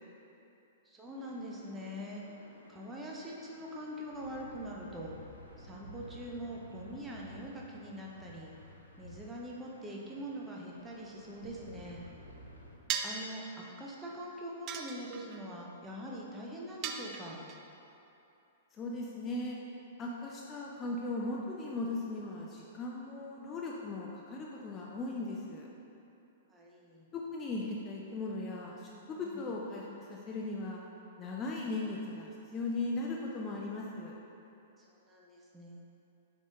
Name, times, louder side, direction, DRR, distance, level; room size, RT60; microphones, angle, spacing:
voice 1, 0.9-2.2 2.7-5.1 5.6-8.5 9.0-12.0 13.0-17.4 22.9-23.0 26.5-27.1 29.2-29.5 34.9-35.8, equal, 10° right, -3 dB, 0.8 m, -43 dB
sound 1, 1.1-12.8, equal, 85° left, 0.8 m, -54 dB
sound 2, 12.9-13.3 14.7-15.4 16.8-17.6, right 7 dB, 30° right, 0.4 m, -37 dB
voice 2, 18.7-19.6 20.0-25.7 27.1-30.8 31.2-34.1, left 2 dB, 20° left, -3 dB, 0.5 m, -38 dB
7.5 x 3.6 x 3.7 m, 2.8 s
figure-of-eight pair, 105°, 0 cm